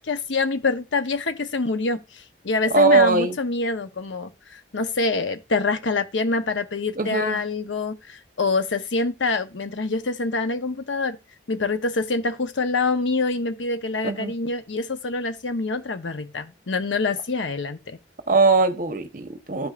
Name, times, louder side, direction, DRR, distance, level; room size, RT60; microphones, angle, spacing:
voice 1, 0.0-2.0 2.4-11.2 11.5-18.0, left 3 dB, 85° left, 0.8 m, -26 dB
voice 2, 2.7-3.4 7.0-7.4 14.0-14.3 18.3-19.7, right 3 dB, 45° right, 0.9 m, -20 dB
13.5 x 5.0 x 2.4 m
head